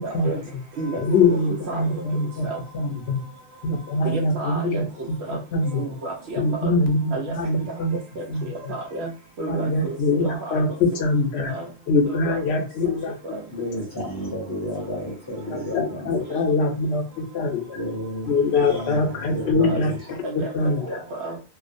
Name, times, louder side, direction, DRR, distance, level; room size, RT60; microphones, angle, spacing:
voice 1, 0.0-0.4 0.8-1.4 1.7-2.0 2.4-2.6 4.0-4.8 5.3-5.4 5.6-6.7 7.1-7.3 8.2-9.1 9.4-10.6 11.5-11.7 12.1-12.6 12.8-12.9 13.3-13.4 15.5-15.8 18.7-18.8 19.7-19.8 20.2-20.5 20.9-21.4, right 2 dB, 80° right, 0.8 m, -32 dB
voice 2, 1.0-2.5 2.7-3.2 3.6-5.8 6.4-8.0 8.3-8.7 9.5-11.5 11.9-13.1 15.5-17.8 18.3-19.9 20.5-20.8, left 3 dB, 75° left, 0.8 m, -23 dB
voice 3, 13.5-16.3 17.7-20.2 20.7-20.9, equal, 25° left, 0.6 m, -32 dB
2.4 x 2.0 x 2.5 m
omnidirectional pair, 1.1 m